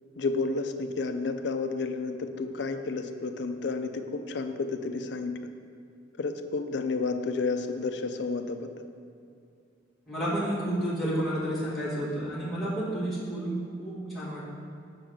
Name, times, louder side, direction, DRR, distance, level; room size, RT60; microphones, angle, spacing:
voice 1, 0.2-5.3 6.2-8.9, left 3 dB, 60° left, 8 dB, 0.4 m, -31 dB
voice 2, 10.1-14.4, right 1 dB, ahead, -12 dB, 1.8 m, -31 dB
7.0 x 3.8 x 6.1 m, 2.4 s
head